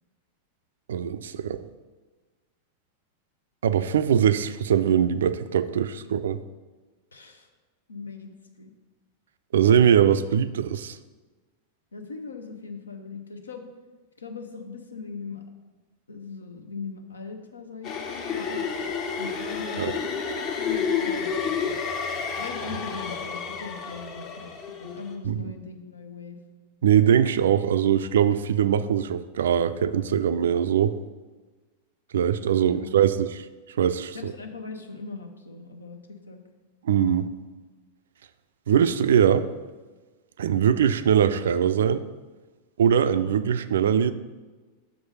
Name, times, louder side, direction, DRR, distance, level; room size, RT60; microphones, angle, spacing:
voice 1, 0.9-1.6 3.6-6.4 9.5-11.0 19.8-19.9 25.2-25.5 26.8-31.0 32.1-33.5 33.8-34.3 36.8-37.3 38.7-39.5 40.4-42.0 42.8-44.1, right 8 dB, 60° right, 13 dB, 0.3 m, -22 dB
voice 2, 7.1-7.5 7.9-8.7 11.9-13.7 14.2-15.4 16.1-18.6 19.2-21.3 21.6-21.7 22.4-24.5 24.8-26.4 32.6-33.1 34.1-36.0 36.3-36.4 37.0-37.2, left 4 dB, 75° left, 6 dB, 0.7 m, -40 dB
sound 1, 17.8-25.1, left 6 dB, 40° left, 0.9 m, -30 dB
6.3 x 4.7 x 5.3 m, 1.3 s
figure-of-eight pair, 90°, 0 cm